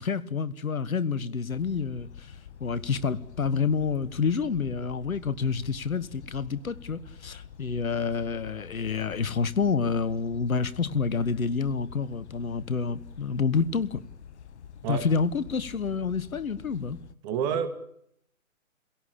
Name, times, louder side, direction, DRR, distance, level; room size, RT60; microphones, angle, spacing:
voice 1, 0.0-2.3 2.6-14.0 14.9-17.0, left 5 dB, 75° left, 1.5 m, -28 dB
sound 1, 1.5-17.1, left 8 dB, 55° left, 1.2 m, -47 dB
voice 2, 17.2-17.7, right 8 dB, 30° right, 2.7 m, -28 dB
29.0 x 17.5 x 8.6 m
figure-of-eight pair, 135°, 42 cm